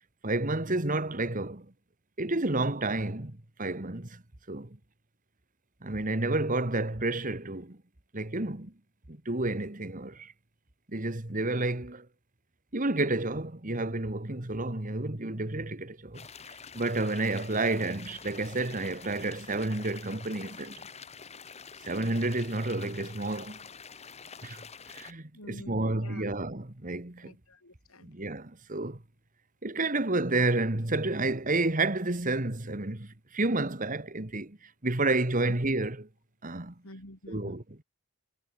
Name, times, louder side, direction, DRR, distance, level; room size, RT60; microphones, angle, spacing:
voice 1, 0.2-1.7 2.2-4.2 4.5-4.8 5.8-7.8 8.1-8.7 9.1-10.3 10.9-12.1 12.7-16.2 16.7-20.9 21.8-23.6 24.4-24.6 24.9-27.3 28.0-29.0 29.6-34.6 34.8-36.1 36.4-36.7 37.3-37.8, right 2 dB, 35° right, 1.8 m, -30 dB
sound 1, 16.1-25.1, left 6 dB, 30° left, 1.4 m, -47 dB
voice 2, 25.3-26.3 27.2-28.1 36.8-37.6, left 1 dB, 70° left, 7.2 m, -48 dB
head